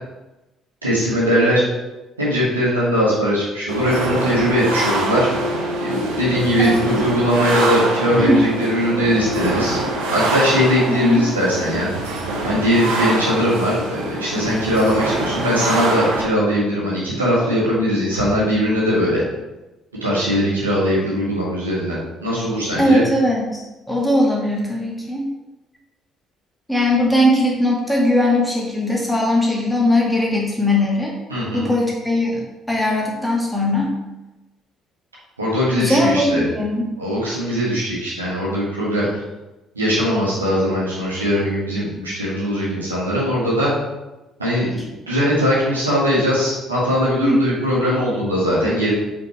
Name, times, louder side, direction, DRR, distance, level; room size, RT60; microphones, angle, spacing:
voice 1, 0.8-1.6 2.2-5.3 5.8-9.8 10.1-11.9 12.4-19.2 20.0-23.0 31.3-31.7 35.4-36.5 37.0-39.1 39.7-43.7 44.4-48.9, equal, 85° right, -8 dB, 1.8 m, -20 dB
sound 1, 3.7-16.2, right 2 dB, 70° right, 1.0 m, -24 dB
voice 2, 6.6-6.9 8.1-8.4 10.9-11.2 22.8-25.3 26.7-31.1 31.5-32.4 32.7-34.0 35.8-37.0 47.2-47.5, left 1 dB, 5° left, -2 dB, 1.8 m, -19 dB
5.4 x 4.5 x 4.4 m, 1.0 s
figure-of-eight pair, 50°, 0 cm